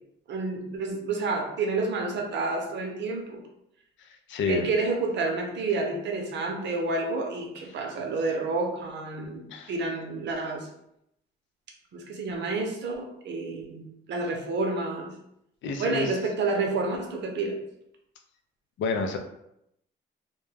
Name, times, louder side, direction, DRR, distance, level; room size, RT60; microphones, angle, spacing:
voice 1, 0.3-3.4 4.5-10.7 11.9-15.1 15.8-17.6, right 3 dB, 65° right, 2 dB, 0.7 m, -29 dB
voice 2, 4.0-4.7 9.5-9.7 15.6-16.2 18.8-19.2, left 4 dB, 70° left, 5 dB, 0.4 m, -29 dB
2.2 x 2.1 x 3.2 m, 0.80 s
cardioid pair, 90°, 20 cm